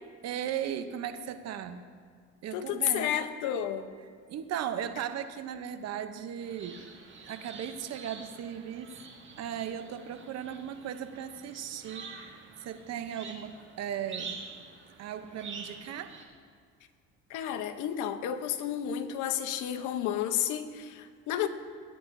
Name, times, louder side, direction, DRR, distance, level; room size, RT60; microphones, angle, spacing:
voice 1, 0.2-1.8 2.4-3.1 4.3-6.8 7.3-8.9 9.4-12.3 12.6-14.3 15.0-16.2, right 9 dB, 55° right, 9 dB, 0.8 m, -37 dB
voice 2, 2.5-3.9 17.3-21.5, left 10 dB, 65° left, 9 dB, 0.8 m, -31 dB
sound 1, 6.4-16.3, right 5 dB, 35° right, 1.9 m, -47 dB
16.0 x 9.6 x 2.6 m, 2.1 s
supercardioid pair, 85°, 32 cm